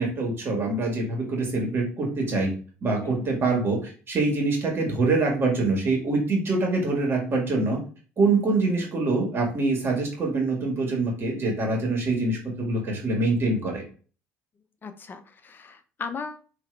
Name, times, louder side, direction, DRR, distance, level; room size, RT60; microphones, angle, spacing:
voice 1, 0.0-2.5 2.8-7.8 8.2-13.8, right 3 dB, 40° right, 1 dB, 1.7 m, -25 dB
voice 2, 3.0-3.4 14.8-16.4, left 5 dB, 35° left, 8 dB, 0.6 m, -37 dB
3.8 x 2.9 x 3.3 m, 0.38 s
supercardioid pair, 85°, 6 cm